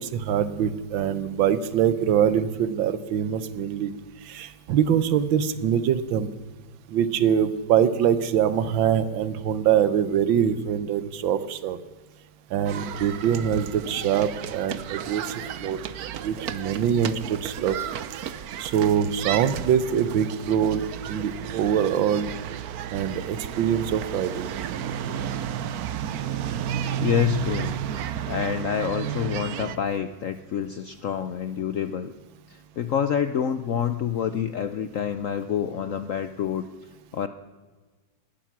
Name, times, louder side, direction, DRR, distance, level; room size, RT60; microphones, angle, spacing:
voice 1, 0.0-3.9 4.3-6.3 6.9-11.8 12.5-15.2 15.6-15.8 16.2-17.8 18.6-22.3 22.9-24.7, right 8 dB, 80° right, 15 dB, 1.6 m, -24 dB
sound 1, 12.6-29.8, right 10 dB, 65° right, 1.0 m, -33 dB
voice 2, 27.0-27.7 28.3-32.1 32.5-36.6 37.1-37.3, left 8 dB, 70° left, 11 dB, 0.7 m, -27 dB
18.5 x 12.0 x 6.0 m, 1.3 s
omnidirectional pair, 2.1 m